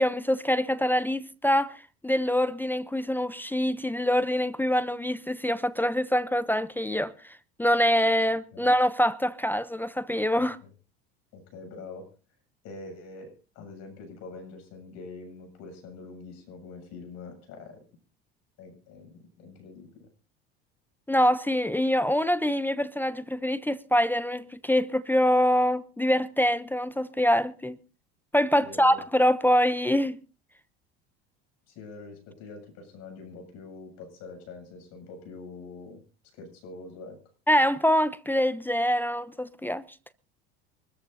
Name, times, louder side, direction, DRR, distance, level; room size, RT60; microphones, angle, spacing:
voice 1, 0.0-1.8 2.0-7.1 7.6-10.6 21.1-27.8 28.3-30.2 37.5-39.8, equal, 5° left, 0.6 m, -24 dB
voice 2, 10.4-10.7 11.3-12.1 12.6-17.8 18.6-20.1 28.6-29.0 31.7-36.0 36.3-37.2, left 3 dB, 60° left, 7.7 m, -44 dB
24.5 x 14.0 x 2.7 m
hypercardioid pair, 80°, 30 cm